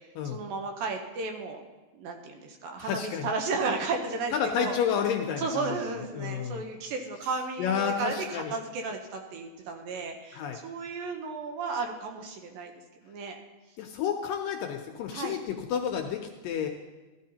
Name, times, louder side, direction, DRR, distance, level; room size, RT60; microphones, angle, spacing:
voice 1, 0.2-1.6 1.9-4.8 5.4-12.7 13.0-13.4 15.1-15.4, right 4 dB, 75° right, 3 dB, 2.4 m, -34 dB
voice 2, 2.8-3.3 4.3-5.7 6.1-6.7 7.6-8.6 10.3-10.6 13.8-16.7, left 7 dB, 80° left, 3 dB, 2.1 m, -30 dB
14.0 x 12.5 x 2.8 m, 1.2 s
omnidirectional pair, 4.5 m